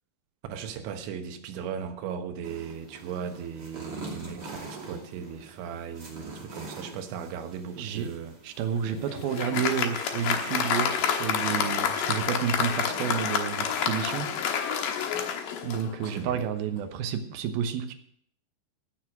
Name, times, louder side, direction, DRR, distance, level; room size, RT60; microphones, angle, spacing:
voice 1, 0.5-8.4 16.1-16.4, right 7 dB, 90° right, 7 dB, 3.5 m, -37 dB
sound 1, 2.4-14.4, right 2 dB, 30° right, 2.5 m, -45 dB
voice 2, 7.8-8.1 8.4-14.3 15.6-17.9, right 8 dB, 70° right, 7 dB, 2.6 m, -30 dB
Applause, 8.8-16.3, left 7 dB, 65° left, 2.3 m, -29 dB
16.5 x 6.6 x 6.0 m, 0.65 s
omnidirectional pair, 5.1 m